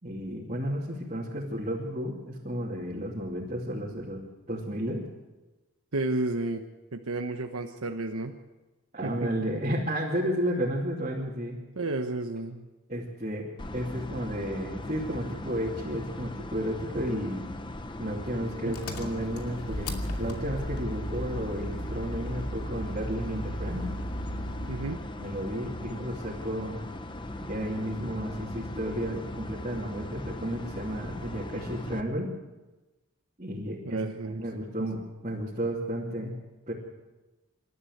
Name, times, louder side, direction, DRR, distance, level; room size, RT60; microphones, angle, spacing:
voice 1, 0.0-5.0 8.9-11.6 12.9-17.4 18.0-23.8 25.2-26.8 27.4-32.3 33.4-34.0 34.3-36.3 36.7-36.8, equal, 30° right, -5 dB, 2.7 m, -32 dB
voice 2, 5.9-6.6 6.9-8.4 9.0-9.3 11.8-12.7 24.7-25.0 33.8-34.4 34.8-34.9, right 2 dB, 80° right, 4 dB, 1.1 m, -31 dB
sound 1, 13.6-32.0, left 1 dB, 20° left, 0.9 m, -39 dB
Engine, 18.7-25.0, equal, 90° left, 2.6 m, -36 dB
26.5 x 12.5 x 8.0 m, 1.1 s
head